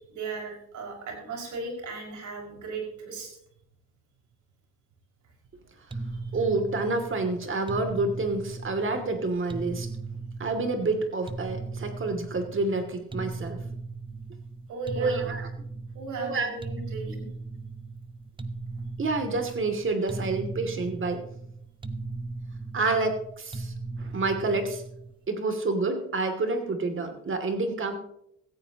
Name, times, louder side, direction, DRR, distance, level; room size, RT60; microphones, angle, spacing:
voice 1, 0.1-3.3 6.2-6.3 14.7-15.4 15.9-17.3, right 4 dB, 75° right, 1 dB, 5.7 m, -37 dB
sound 1, 5.9-25.2, right 3 dB, 15° right, 0.9 m, -38 dB
voice 2, 6.3-9.9 10.4-13.6 15.0-15.5 16.2-16.6 19.0-21.2 22.7-24.8 25.3-28.0, right 3 dB, 40° right, 6 dB, 2.6 m, -28 dB
16.5 x 15.0 x 2.9 m, 0.75 s
cardioid pair, 90°, 30 cm